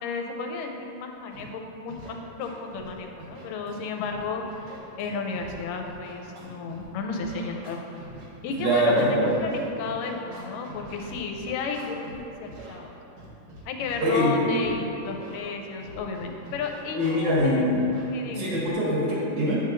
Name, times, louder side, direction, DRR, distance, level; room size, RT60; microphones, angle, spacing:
voice 1, 0.0-7.8 8.4-13.0 13.7-17.6 18.1-18.5, left 4 dB, 85° left, 3 dB, 2.3 m, -33 dB
Scratching (performance technique), 1.3-1.4 1.9-2.1 2.4-2.9 3.2-4.2 4.5-6.8 7.1-12.2 12.5-12.7 13.2-14.1 14.6-14.7 15.0-15.4 15.8-17.4 17.7-18.0 18.5-18.7, right 2 dB, 85° right, 3.1 m, -44 dB
voice 2, 8.6-9.3 14.0-14.3 16.9-17.9 18.3-19.6, equal, 70° right, -7 dB, 3.0 m, -23 dB
8.8 x 7.5 x 2.5 m, 2.8 s
omnidirectional pair, 3.8 m